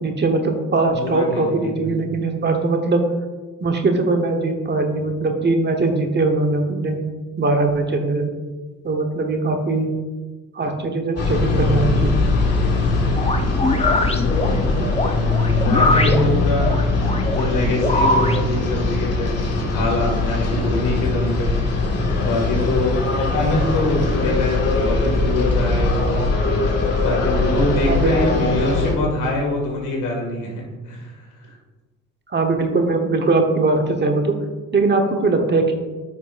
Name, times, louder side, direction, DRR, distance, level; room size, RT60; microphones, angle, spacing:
voice 1, 0.0-3.0 3.6-7.0 7.4-8.3 8.8-9.9 10.5-12.3 24.1-24.2 27.8-28.4 32.3-34.4 34.7-35.7, right 3 dB, 35° right, 4 dB, 1.1 m, -20 dB
voice 2, 0.9-2.0 14.2-16.8 17.3-26.3 27.0-31.1 31.4-31.5, left 2 dB, 80° left, -1 dB, 2.0 m, -24 dB
sound 1, 11.2-28.9, left 3 dB, 55° left, 1.9 m, -21 dB
sound 2, 13.1-18.4, left 2 dB, 20° left, 0.8 m, -22 dB
9.4 x 5.5 x 2.5 m, 1.3 s
cardioid pair, 90°, 30 cm